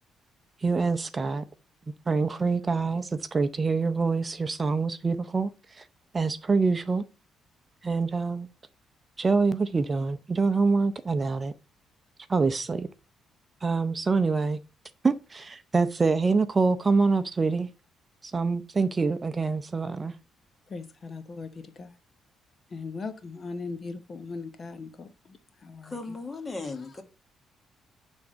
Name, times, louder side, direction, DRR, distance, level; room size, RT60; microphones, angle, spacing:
voice 1, 0.6-1.4 2.1-5.9 6.1-7.0 7.8-8.5 9.2-11.5 12.3-12.9 13.6-14.6 15.0-17.7 18.2-20.1, right 4 dB, 30° right, 0.6 m, -25 dB
voice 2, 20.7-21.9 22.7-26.2, left 4 dB, 45° left, 0.9 m, -39 dB
voice 3, 25.8-27.0, left 3 dB, 25° left, 1.5 m, -36 dB
8.3 x 3.5 x 5.0 m
cardioid pair, 90°, 0 cm